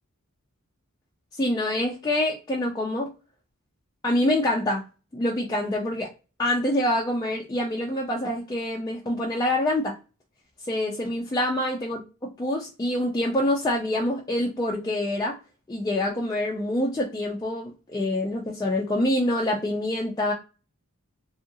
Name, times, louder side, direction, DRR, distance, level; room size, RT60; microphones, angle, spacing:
voice 1, 1.3-3.1 4.0-4.8 5.1-6.1 6.4-10.0 10.7-15.4 15.7-20.3, left 1 dB, 20° left, -2 dB, 0.4 m, -26 dB
2.8 x 2.4 x 2.6 m, 0.30 s
head